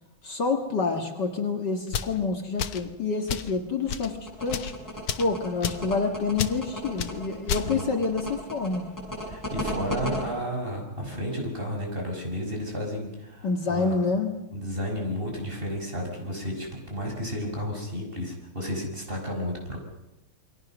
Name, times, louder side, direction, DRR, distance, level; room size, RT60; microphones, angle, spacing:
voice 1, 0.2-4.7 5.2-8.9 13.4-14.3, left 4 dB, 55° left, 3 dB, 2.4 m, -28 dB
sound 1, 1.9-2.2 2.6-2.9 3.3-3.5 3.9-4.1 4.5-4.7 5.1-5.3 5.6-5.9 6.4-6.6 7.0-7.1 7.5-7.7, left 8 dB, 80° left, 2.0 m, -30 dB
sound 2, 4.3-10.2, left 1 dB, 10° left, 7.6 m, -34 dB
voice 2, 9.3-14.0 14.5-19.8, equal, 25° right, 1 dB, 6.1 m, -32 dB
28.5 x 23.5 x 6.2 m, 0.94 s
omnidirectional pair, 2.3 m